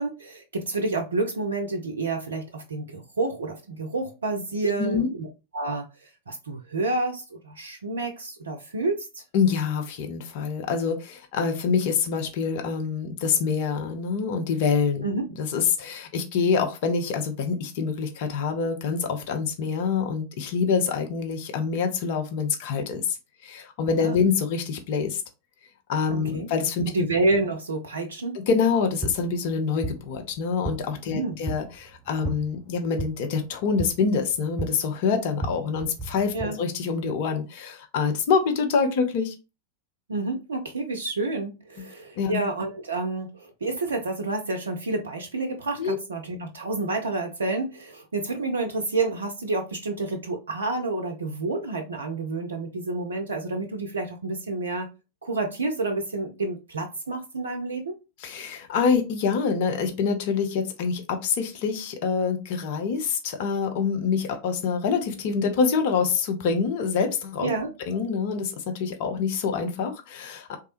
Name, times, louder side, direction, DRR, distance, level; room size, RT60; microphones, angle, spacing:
voice 1, 0.0-5.3 5.5-5.9 6.3-9.2 15.0-15.3 23.9-24.2 26.1-26.5 26.9-28.4 31.1-31.4 36.3-36.6 40.1-54.9 55.2-57.9 67.4-67.7, right 2 dB, 70° right, 4 dB, 0.4 m, -29 dB
voice 2, 4.8-5.1 9.3-15.0 15.4-23.2 23.4-25.2 25.9-26.9 28.3-39.3 42.2-42.3 45.8-46.0 58.2-67.5 67.9-70.6, left 5 dB, 50° left, 5 dB, 0.6 m, -26 dB
sound 1, 28.7-36.5, right 2 dB, 20° right, 0.7 m, -36 dB
3.1 x 2.3 x 2.9 m, 0.28 s
figure-of-eight pair, 90°, 0 cm